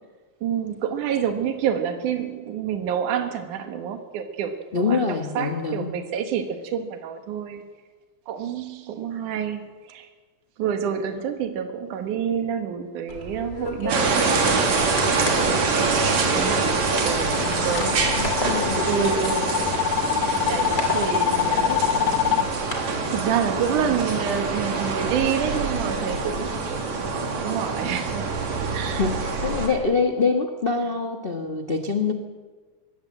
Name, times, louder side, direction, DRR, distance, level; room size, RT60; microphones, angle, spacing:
voice 1, 0.4-7.6 8.3-10.1 10.6-14.1 15.1-16.8 17.0-18.0 18.8-19.6 19.9-26.9 27.3-28.3 28.7-29.1, right 8 dB, 80° right, 6 dB, 2.9 m, -28 dB
voice 2, 4.7-5.9 17.8-18.9 21.7-21.8 29.0-32.1, left 4 dB, 60° left, 3 dB, 0.5 m, -25 dB
sound 1, 13.1-22.8, left 2 dB, 35° left, 3.2 m, -34 dB
sound 2, 13.9-29.7, right 4 dB, 60° right, 3.8 m, -25 dB
sound 3, 16.3-22.4, left 10 dB, 80° left, 2.2 m, -25 dB
21.0 x 17.5 x 7.6 m, 1.4 s
omnidirectional pair, 3.5 m